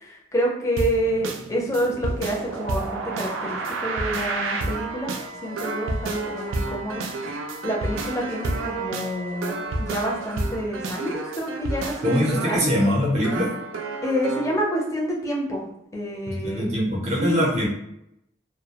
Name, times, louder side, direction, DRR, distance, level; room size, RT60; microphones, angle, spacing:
voice 1, 0.0-5.1 5.4-7.0 7.6-12.7 14.0-15.6 15.9-16.7 17.2-17.4, equal, 15° left, -2 dB, 0.4 m, -28 dB
sound 1, 0.8-14.6, right 2 dB, 90° right, 0.4 m, -30 dB
Wind instrument woodwind instrument, 4.5-9.6, left 1 dB, 70° left, 0.5 m, -43 dB
voice 2, 12.0-13.5 16.4-17.7, equal, 35° right, -4 dB, 0.5 m, -22 dB
2.2 x 2.0 x 2.8 m, 0.79 s
head